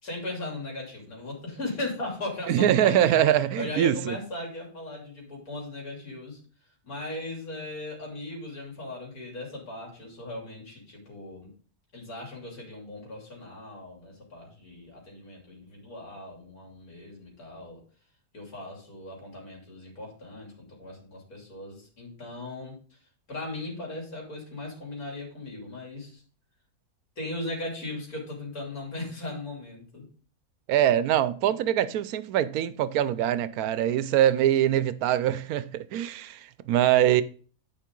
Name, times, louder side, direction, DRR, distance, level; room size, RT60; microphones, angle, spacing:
voice 1, 0.0-3.2 3.6-6.4 6.8-11.5 11.9-17.8 18.3-22.8 23.3-26.2 27.2-30.1 31.5-31.6, left 2 dB, 80° left, 3.5 m, -38 dB
voice 2, 2.5-4.2 30.7-37.2, right 11 dB, 85° right, 1.1 m, -23 dB
10.0 x 5.2 x 3.7 m
omnidirectional pair, 1.5 m